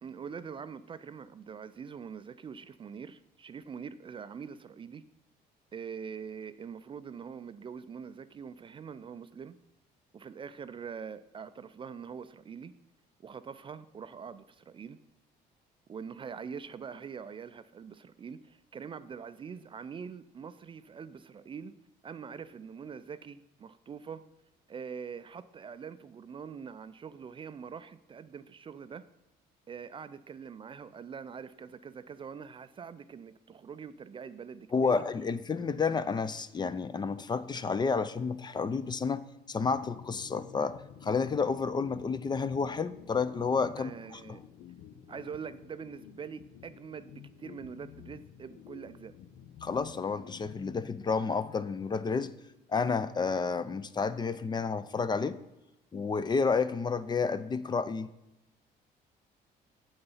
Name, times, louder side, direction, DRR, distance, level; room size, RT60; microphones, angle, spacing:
voice 1, 0.0-5.0 5.7-9.5 10.1-12.7 13.2-15.0 15.9-21.7 22.0-24.2 24.7-29.0 29.7-35.0 43.8-44.4 45.1-49.1, right 6 dB, 30° right, 13 dB, 0.4 m, -44 dB
voice 2, 34.7-44.2 49.6-52.3 52.7-55.4 55.9-58.1, left 5 dB, 25° left, 14 dB, 0.5 m, -30 dB
sound 1, 39.6-51.5, left 9 dB, 70° left, 0.7 m, -51 dB
7.9 x 6.8 x 5.5 m, 0.92 s
cardioid pair, 110°, 17 cm